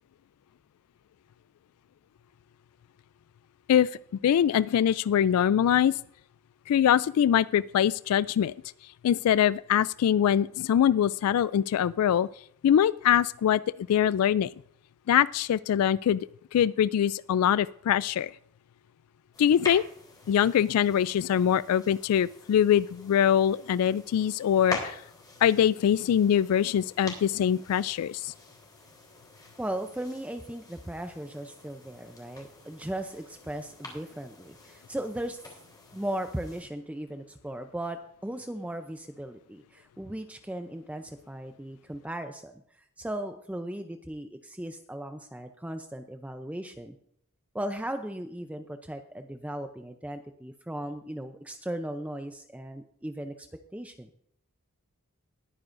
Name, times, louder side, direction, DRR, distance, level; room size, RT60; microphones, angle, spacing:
voice 1, 4.2-6.0 6.7-8.5 9.0-12.3 12.6-14.5 15.1-18.3 19.4-19.8 20.3-25.0 25.4-28.3, left 9 dB, 80° left, 17 dB, 0.3 m, -23 dB
sound 1, 19.3-36.6, left 2 dB, 20° left, 3.4 m, -45 dB
voice 2, 29.6-35.4 35.9-42.6 43.0-47.0 47.5-53.5 53.7-54.1, right 1 dB, 5° right, 7 dB, 0.5 m, -37 dB
20.0 x 9.4 x 2.6 m, 0.70 s
head